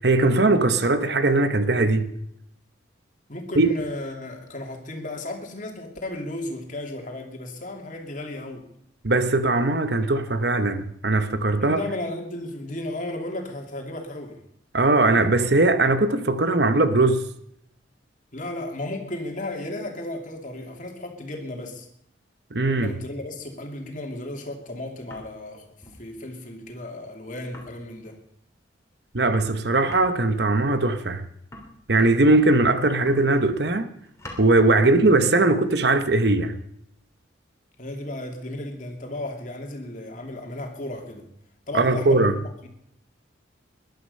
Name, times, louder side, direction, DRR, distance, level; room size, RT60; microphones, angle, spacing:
voice 1, 0.0-2.1 3.5-3.7 9.0-11.8 14.7-17.2 22.5-22.9 29.1-31.2 31.9-33.9 34.4-36.6 41.7-42.4, right 2 dB, 60° right, 1.1 m, -20 dB
voice 2, 3.3-8.7 11.6-14.4 18.3-21.9 22.7-25.7 26.0-28.2 37.8-41.3 41.7-42.3, left 1 dB, 40° left, 2.6 m, -34 dB
sound 1, 24.9-25.5 25.8-26.1 26.3-26.4 26.7-26.8 26.9-27.1 27.4-28.3 28.7-28.8 29.0-32.5 32.9-33.6 33.9-34.5 35.4-37.3, left 1 dB, 15° left, 3.1 m, -47 dB
20.5 x 12.0 x 5.5 m
head